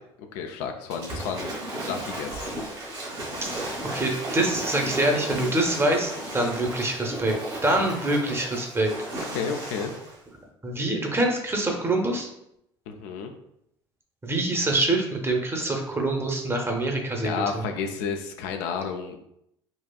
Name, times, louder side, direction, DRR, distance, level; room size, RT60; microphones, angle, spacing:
voice 1, 0.3-1.5 1.8-2.5 9.3-9.9 12.9-13.3 17.2-19.2, left 6 dB, 70° left, 4 dB, 0.4 m, -31 dB
Waves surf / Splash splatter, 0.9-10.2, right 1 dB, 80° right, 1.3 m, -34 dB
voice 2, 3.9-7.3 7.6-8.9 10.6-12.3 14.2-17.3, right 2 dB, 20° right, 2 dB, 0.8 m, -25 dB
4.1 x 2.3 x 2.3 m, 0.78 s
hypercardioid pair, 65°, 14 cm